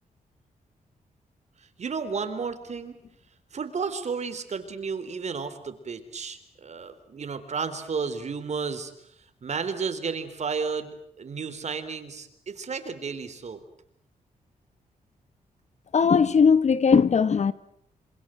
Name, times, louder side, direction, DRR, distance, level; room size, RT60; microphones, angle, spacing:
voice 1, 1.6-3.0 3.5-9.1 9.4-13.6, right 5 dB, 50° right, 3.8 m, -32 dB
voice 2, 15.9-17.5, left 6 dB, 50° left, 1.2 m, -19 dB
26.5 x 26.5 x 7.8 m
cardioid pair, 110°, 15 cm